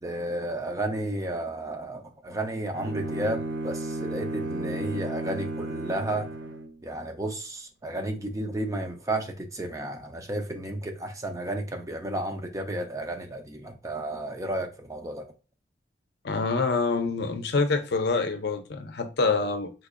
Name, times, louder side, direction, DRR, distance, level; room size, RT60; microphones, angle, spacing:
voice 1, 0.0-6.3 6.8-15.3, right 1 dB, 20° right, 0.5 m, -32 dB
Bowed string instrument, 2.7-6.8, right 2 dB, 85° right, 0.5 m, -33 dB
voice 2, 16.2-19.7, left 4 dB, 65° left, 0.6 m, -26 dB
3.9 x 2.6 x 2.5 m
head